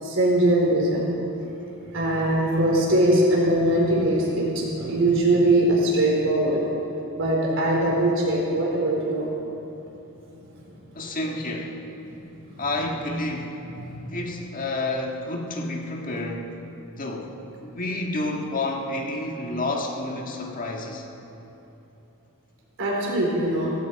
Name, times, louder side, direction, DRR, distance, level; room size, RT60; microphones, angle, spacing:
voice 1, 0.0-1.1 1.9-6.6 7.1-9.3 10.5-10.6 12.5-12.6 13.8-14.0 22.8-23.7, right 1 dB, 60° right, -3 dB, 4.2 m, -21 dB
voice 2, 10.9-11.7 12.6-13.6 14.1-16.5 17.0-17.3 17.6-21.0, left 2 dB, 40° left, 1 dB, 1.6 m, -29 dB
18.0 x 16.5 x 4.7 m, 2.9 s
head